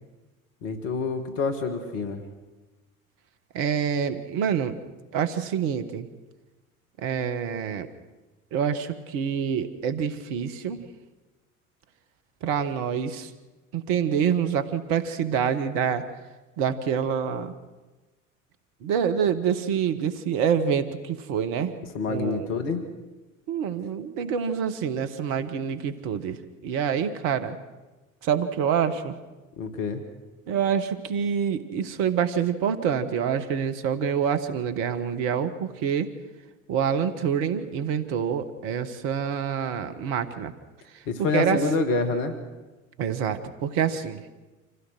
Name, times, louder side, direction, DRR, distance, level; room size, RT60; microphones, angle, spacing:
voice 1, 0.6-2.2 21.9-22.8 29.6-30.0 41.1-42.3, left 4 dB, 65° left, 7 dB, 2.1 m, -27 dB
voice 2, 3.5-4.8 5.1-6.1 7.0-7.9 8.5-10.8 12.4-13.3 13.7-16.0 16.6-17.5 18.8-21.7 22.1-22.5 23.5-26.4 26.6-27.5 28.2-29.1 30.5-36.1 36.7-40.5 41.3-41.6 43.0-44.2, right 7 dB, 55° right, 11 dB, 1.6 m, -26 dB
26.5 x 16.0 x 6.3 m, 1.2 s
figure-of-eight pair, 60°, 41 cm